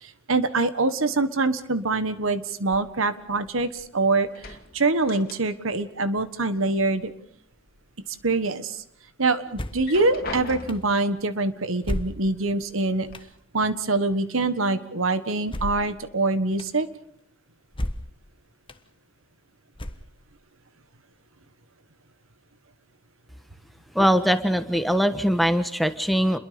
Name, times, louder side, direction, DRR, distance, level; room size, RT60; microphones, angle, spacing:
voice 1, 0.0-7.1 8.2-8.8 9.2-13.1 13.5-16.9, right 3 dB, 75° right, 12 dB, 1.5 m, -24 dB
sound 1, 2.7-3.9 4.2-5.8 6.1-7.1 7.5-8.3 8.8-8.9 9.6-11.0 12.0-12.1 12.5-13.1, left 3 dB, 45° left, 2.7 m, -41 dB
sound 2, 9.5-9.9 10.7-10.8 11.8-12.5 13.1-13.3 15.5-15.9 16.6-16.7 17.7-18.2 18.7-18.8 19.8-20.3, left 1 dB, 25° left, 1.2 m, -32 dB
voice 2, 23.9-26.4, equal, ahead, 9 dB, 1.3 m, -21 dB
29.5 x 22.5 x 5.2 m, 0.68 s
head